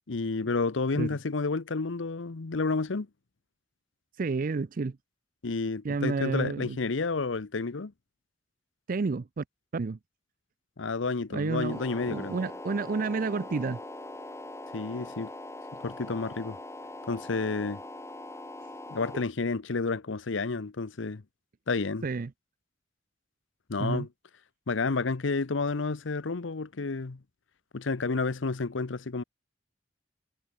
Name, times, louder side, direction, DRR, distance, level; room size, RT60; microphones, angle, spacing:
voice 1, 0.1-3.1 5.4-7.9 10.8-12.3 14.7-15.3 15.8-16.6 17.1-17.8 18.9-21.2 21.7-22.1 23.7-24.1 24.7-27.2 27.7-29.2, left 3 dB, 85° left, 0.8 m, -30 dB
voice 2, 4.2-5.0 5.8-6.8 8.9-9.4 9.7-10.0 11.3-11.8 12.1-13.8 22.0-22.3 23.8-24.1, right 4 dB, 45° right, 0.4 m, -30 dB
sound 1, 11.7-19.2, left 1 dB, 15° left, 4.4 m, -42 dB
head